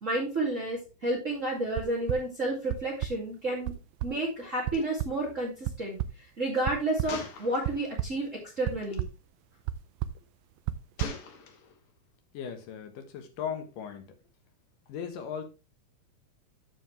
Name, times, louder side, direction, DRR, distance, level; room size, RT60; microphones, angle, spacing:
voice 1, 0.0-3.7 4.0-9.0, right 2 dB, 25° right, 2.2 m, -31 dB
sound 1, 1.7-2.2 2.7-3.1 3.7-3.8 4.0-4.1 4.7-4.8 5.0-5.1 5.7-6.1 6.7-7.1 7.7-8.2 8.7-9.1 9.7-9.8 10.0-10.2 10.7-11.1, right 13 dB, 85° right, 1.6 m, -30 dB
Gunshot gunfire, 4.7-4.8 5.1-5.3 7.1-8.1 8.8-9.0 11.0-11.9, left 5 dB, 60° left, 1.7 m, -42 dB
voice 2, 12.3-14.1 14.9-15.4, left 7 dB, 90° left, 2.9 m, -37 dB
13.0 x 4.8 x 3.2 m
omnidirectional pair, 3.7 m